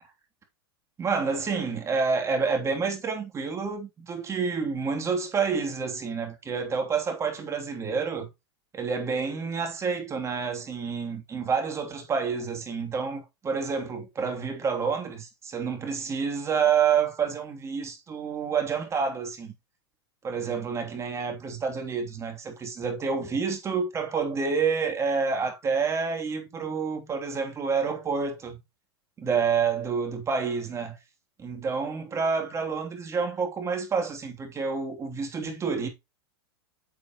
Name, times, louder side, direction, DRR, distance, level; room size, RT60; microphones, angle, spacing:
voice 1, 1.0-8.3 8.7-19.5 20.2-28.6 29.2-31.0 31.4-35.9, right 5 dB, 20° right, 2.8 m, -28 dB
9.7 x 6.8 x 3.0 m
hypercardioid pair, 125°, 13 cm